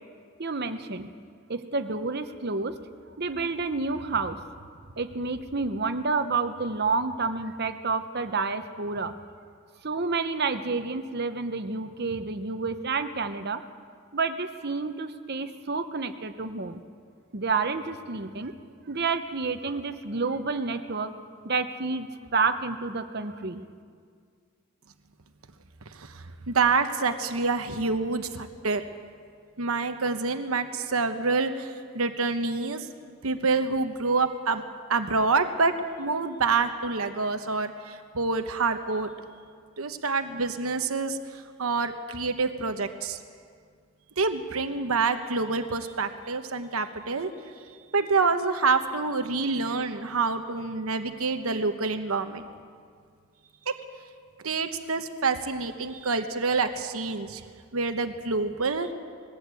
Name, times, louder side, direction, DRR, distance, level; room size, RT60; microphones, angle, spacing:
voice 1, 0.4-1.1 1.5-2.7 3.2-4.4 5.0-9.1 9.8-13.6 14.1-16.8 17.3-18.5 18.9-21.1 21.4-23.6, right 4 dB, 50° right, 9 dB, 1.0 m, -29 dB
voice 2, 25.9-28.8 29.6-32.9 33.2-34.6 34.9-39.1 39.8-43.2 44.2-47.3 47.9-52.4 53.7-53.8 54.4-57.4 57.7-58.9, right 4 dB, 80° right, 8 dB, 1.0 m, -27 dB
21.0 x 16.5 x 8.3 m, 2.1 s
head